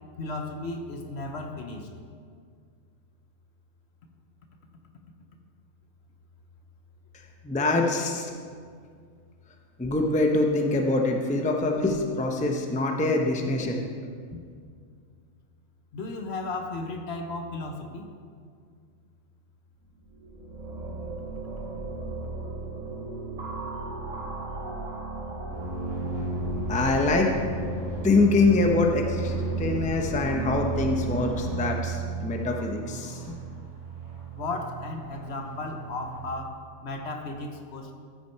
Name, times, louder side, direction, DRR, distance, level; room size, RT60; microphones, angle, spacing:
voice 1, 0.2-1.9 15.9-18.1 34.3-37.9, left 2 dB, 60° left, 4 dB, 1.1 m, -35 dB
voice 2, 7.4-8.3 9.8-13.8 26.7-27.4 28.0-33.3, left 2 dB, 10° left, 2 dB, 0.6 m, -24 dB
sound 1, 20.0-31.6, right 3 dB, 85° right, 1.6 m, -36 dB
sound 2, 25.5-36.2, right 3 dB, 55° right, 3.2 m, -34 dB
13.5 x 5.9 x 4.6 m, 2.1 s
omnidirectional pair, 1.3 m